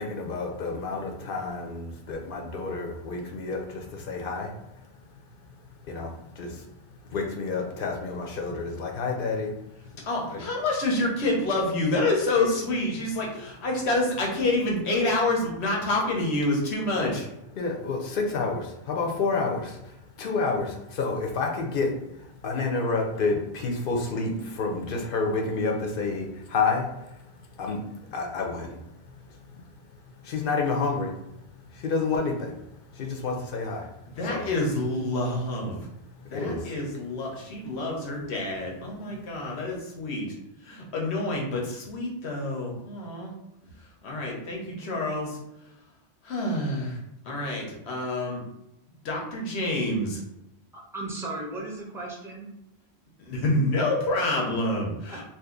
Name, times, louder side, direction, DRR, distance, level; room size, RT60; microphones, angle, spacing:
voice 1, 0.0-4.8 5.8-6.6 7.1-9.5 9.8-9.9 10.3-10.4 13.4-13.5 17.6-27.3 27.5-28.8 29.5-29.6 30.2-31.2 31.6-32.5 32.9-33.9 34.2-34.5 36.2-36.8 39.1-39.2, left 4 dB, 60° left, 2 dB, 0.8 m, -29 dB
voice 2, 10.0-17.3 34.1-35.8 36.3-40.3 40.6-43.3 44.0-45.4 46.2-47.0 47.3-48.4 49.0-50.2 53.3-55.3, left 2 dB, 85° left, -1 dB, 1.1 m, -27 dB
voice 3, 50.7-52.5 55.1-55.3, right 2 dB, 5° right, -2 dB, 0.5 m, -36 dB
2.7 x 2.5 x 3.7 m, 0.87 s
omnidirectional pair, 1.1 m